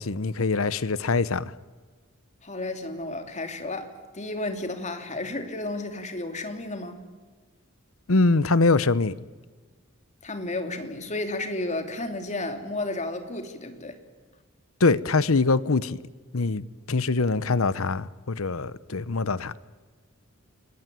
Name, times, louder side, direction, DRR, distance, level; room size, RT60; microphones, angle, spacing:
voice 1, 0.0-1.5 8.1-9.1 14.8-16.0 16.3-19.5, left 3 dB, 70° left, 0.9 m, -23 dB
voice 2, 2.4-7.0 10.2-14.0, left 2 dB, 35° left, 3.0 m, -32 dB
29.5 x 20.5 x 9.2 m
head